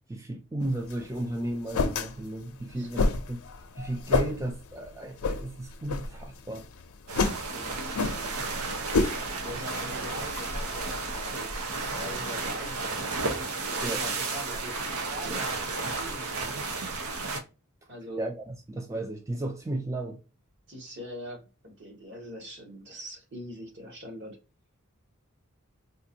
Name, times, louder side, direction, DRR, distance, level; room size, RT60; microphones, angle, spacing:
voice 1, 0.1-3.4 3.7-6.7 13.8-14.0 15.3-15.5 18.2-20.2, right 1 dB, 15° right, 0.4 m, -34 dB
sound 1, 0.6-11.3, left 3 dB, 85° left, 0.5 m, -32 dB
sound 2, 7.1-17.4, right 3 dB, 85° right, 0.8 m, -33 dB
voice 2, 7.5-8.9 9.4-11.6 11.9-13.1 13.7-16.9 17.9-18.2 20.7-24.4, equal, 55° right, 1.5 m, -43 dB
3.7 x 2.6 x 2.7 m
head